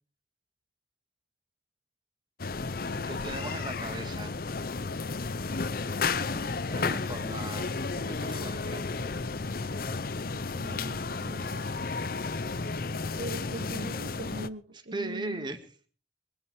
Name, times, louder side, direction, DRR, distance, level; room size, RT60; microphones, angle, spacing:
sound 1, 2.4-14.5, left 4 dB, 50° left, 0.7 m, -33 dB
voice 1, 3.0-4.3 6.2-8.9 14.7-15.6, right 2 dB, 25° right, 7 dB, 2.1 m, -39 dB
voice 2, 10.5-11.5 12.7-15.5, right 1 dB, 80° right, 3 dB, 1.9 m, -41 dB
23.0 x 10.0 x 4.8 m, 0.41 s
head